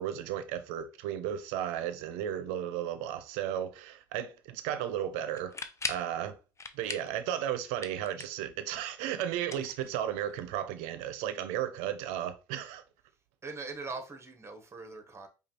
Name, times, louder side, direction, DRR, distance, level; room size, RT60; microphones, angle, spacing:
voice 1, 0.0-5.6 5.9-6.4 6.7-12.8, right 10 dB, 80° right, 0.6 m, -34 dB
sound 1, 5.3-6.1 6.6-7.2 7.5-8.5 9.4-10.3, left 4 dB, 25° left, 0.6 m, -39 dB
voice 2, 13.4-15.3, right 3 dB, 25° right, 1.1 m, -41 dB
4.8 x 2.4 x 3.0 m
supercardioid pair, 70°, 12 cm